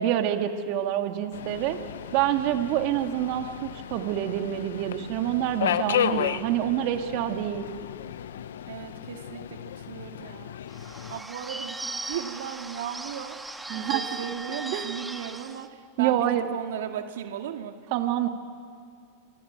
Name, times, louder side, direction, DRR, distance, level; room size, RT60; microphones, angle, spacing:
voice 1, 0.0-1.8 2.1-7.7 13.7-14.0 14.7-14.9 16.0-16.5 17.9-18.3, right 11 dB, 55° right, 6 dB, 2.1 m, -27 dB
Subway metro underground, 1.3-11.2, left 10 dB, 85° left, 0.9 m, -33 dB
voice 2, 8.7-10.5 11.1-13.4 13.7-17.9, right 9 dB, 80° right, 5 dB, 2.0 m, -36 dB
Bird / Bell, 10.7-15.7, right 2 dB, 10° right, 1.6 m, -37 dB
27.0 x 24.0 x 8.9 m, 2.2 s
hypercardioid pair, 120°, 0 cm